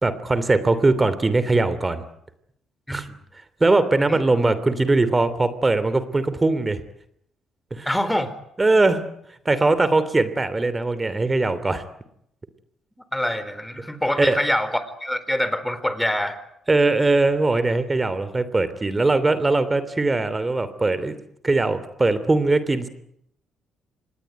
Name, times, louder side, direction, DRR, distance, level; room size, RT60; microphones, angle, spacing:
voice 1, 0.0-2.0 2.9-3.1 3.6-6.8 7.7-7.9 8.6-9.1 9.4-11.8 14.2-14.4 16.7-21.2 21.4-22.9, right 2 dB, 20° right, 13 dB, 3.0 m, -20 dB
voice 2, 7.9-8.4 13.1-16.4, left 1 dB, 5° left, 12 dB, 4.1 m, -25 dB
26.0 x 20.5 x 9.3 m, 0.74 s
cardioid pair, 90°, 0 cm